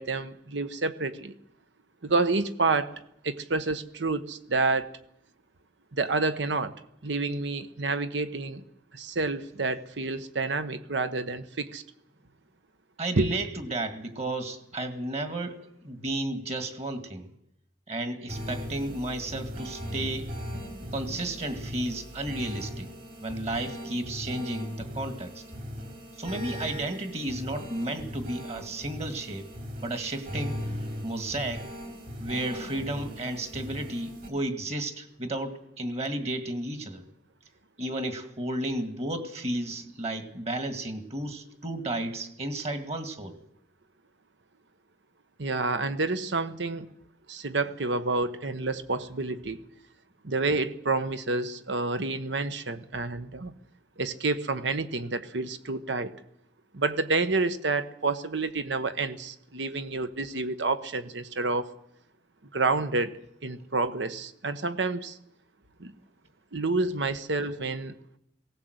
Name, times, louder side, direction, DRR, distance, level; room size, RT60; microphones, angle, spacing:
voice 1, 0.0-1.3 2.0-2.9 3.2-4.9 5.9-6.7 7.0-8.6 8.9-11.8 13.2-13.3 45.4-46.9 47.3-49.6 50.2-53.5 54.0-56.1 56.7-61.7 62.5-63.1 63.4-65.2 65.8-65.9 66.5-67.9, right 3 dB, 80° right, 12 dB, 1.2 m, -29 dB
voice 2, 13.0-17.3 17.9-22.9 23.2-25.4 26.2-29.5 29.8-30.6 31.0-31.7 32.2-37.0 37.8-43.4, right 1 dB, 35° right, 9 dB, 2.0 m, -33 dB
sound 1, 18.3-34.3, equal, 50° right, 4.1 m, -38 dB
19.0 x 17.5 x 8.0 m, 0.77 s
head